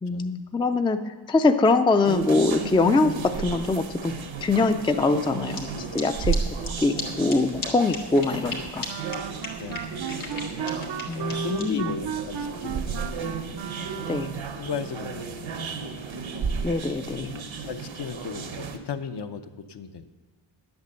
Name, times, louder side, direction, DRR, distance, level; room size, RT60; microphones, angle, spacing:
voice 1, 0.0-4.1 4.4-8.9 11.1-11.9 14.1-14.4 16.6-17.4, left 3 dB, 10° left, 8 dB, 0.3 m, -23 dB
sound 1, 2.0-18.8, right 5 dB, 80° right, 1.0 m, -34 dB
sound 2, 5.5-5.6 6.0-6.1 6.3-6.4 6.6-6.7 6.9-7.0 7.3-7.4 7.6-7.7 7.9-8.6 8.8-8.9 9.1-9.2 9.4-11.6, left 4 dB, 90° left, 1.8 m, -34 dB
Wind instrument woodwind instrument, 8.9-14.5, right 9 dB, 60° right, 0.5 m, -35 dB
voice 2, 11.1-13.1 13.8-14.1 14.5-15.9 17.1-20.1, left 6 dB, 60° left, 8 dB, 0.7 m, -36 dB
11.0 x 8.1 x 6.7 m, 1.4 s
wide cardioid pair, 125°, 46 cm